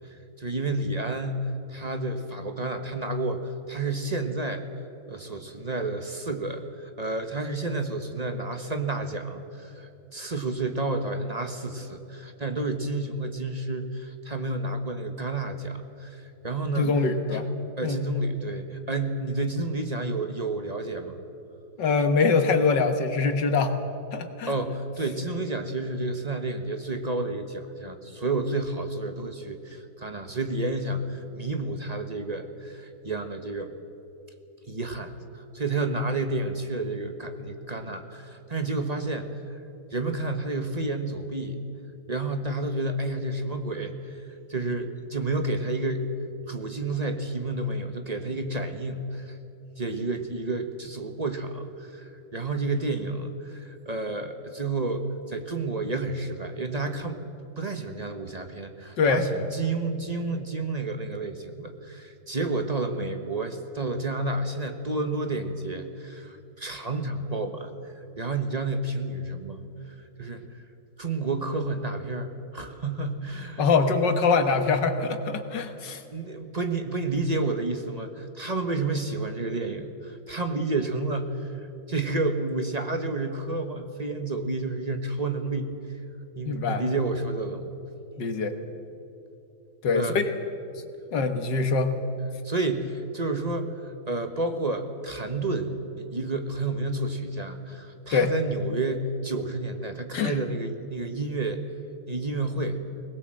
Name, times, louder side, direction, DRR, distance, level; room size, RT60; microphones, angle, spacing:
voice 1, 0.0-4.7 5.1-16.9 17.3-17.4 17.8-21.2 24.5-33.7 34.7-39.6 39.9-41.6 42.1-44.2 44.5-46.1 46.5-49.4 49.8-57.2 57.6-70.6 71.0-73.7 76.1-85.7 86.4-87.7 89.9-90.2 92.4-95.7 96.0-101.6 102.1-102.8, right 2 dB, 25° right, 6 dB, 1.0 m, -30 dB
voice 2, 16.8-17.5 17.8-18.0 21.8-23.8 24.1-24.5 59.0-59.2 73.6-76.0 86.5-86.8 88.2-88.6 89.8-90.3 91.1-92.0 98.1-98.3 100.1-100.4, left 4 dB, 65° left, 8 dB, 1.8 m, -23 dB
21.5 x 19.5 x 7.7 m, 2.8 s
omnidirectional pair, 2.1 m